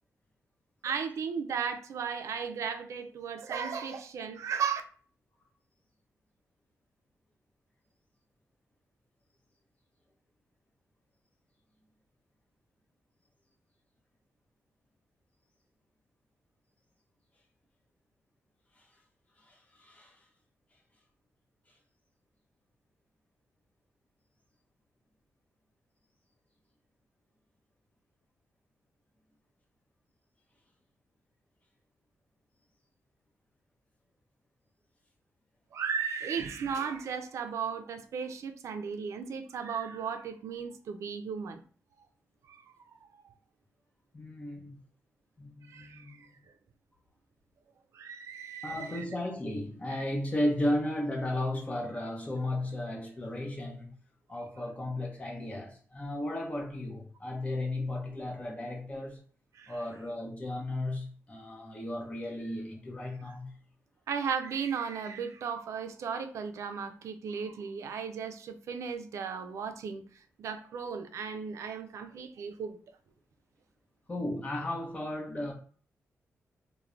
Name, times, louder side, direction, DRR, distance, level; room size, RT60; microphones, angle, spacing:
voice 1, 0.8-4.8 35.7-41.6 42.5-42.6 43.1-43.2 45.7-46.3 47.9-49.0 59.6-59.8 64.1-70.0 70.4-72.8, right 6 dB, 75° right, 0.4 m, -35 dB
voice 2, 19.5-20.1 44.1-44.8 45.4-46.3 48.6-53.9 54.3-59.2 59.7-63.5 74.1-75.5, left 1 dB, 25° left, 0.7 m, -34 dB
3.0 x 2.1 x 2.4 m
wide cardioid pair, 115°, 5 cm